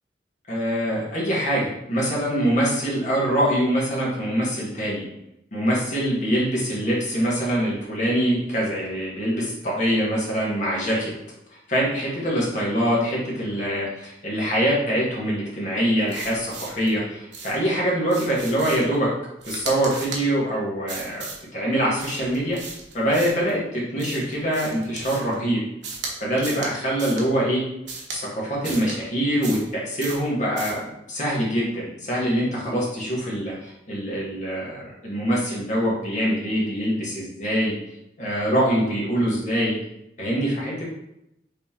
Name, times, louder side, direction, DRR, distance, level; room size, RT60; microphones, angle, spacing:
voice 1, 0.5-5.0 5.5-11.1 11.7-19.1 19.5-21.3 21.5-22.6 22.9-25.6 26.2-27.6 28.1-30.8 31.1-37.8 38.2-39.7 40.2-40.8, equal, 45° left, -5 dB, 1.5 m, -24 dB
sound 1, 16.1-16.9 17.3-17.7 18.1-18.9 19.4-20.2 20.9-21.4 22.0-23.5 24.0-25.3 25.8-26.1 26.4-26.7 27.0-27.3 27.9-28.2 28.6-29.0 29.4-29.7 30.0-30.2 30.6-30.8, right 4 dB, 90° right, 1.0 m, -36 dB
5.3 x 3.3 x 2.9 m, 0.83 s
head